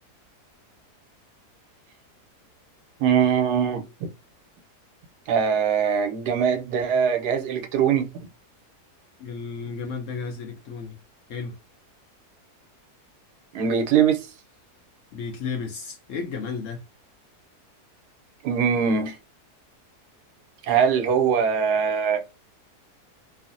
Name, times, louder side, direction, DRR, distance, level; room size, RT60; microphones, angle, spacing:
voice 1, 3.0-3.8 5.3-8.1 13.5-14.2 18.4-19.2 20.7-22.3, right 7 dB, 80° right, 1.3 m, -22 dB
voice 2, 9.2-11.0 11.3-11.6 15.1-16.8, left 5 dB, 65° left, 0.8 m, -33 dB
3.1 x 2.0 x 2.5 m
omnidirectional pair, 1.7 m